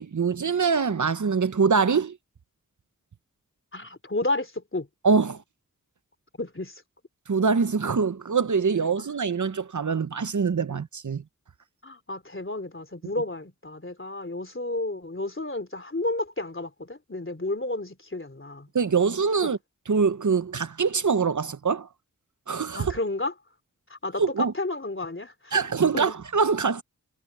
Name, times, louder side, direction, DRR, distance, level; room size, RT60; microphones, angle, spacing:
voice 1, 0.0-2.2 5.0-5.4 7.3-11.2 18.7-19.6 19.9-21.9 22.5-22.9 24.2-24.5 25.5-26.8, right 5 dB, 60° right, 0.8 m, -24 dB
voice 2, 3.7-4.9 6.4-6.8 9.0-9.1 11.8-18.7 19.4-19.5 22.7-23.3 23.9-25.6 25.9-26.2, left 2 dB, 40° left, 3.2 m, -31 dB
wide cardioid pair, 45°, 33 cm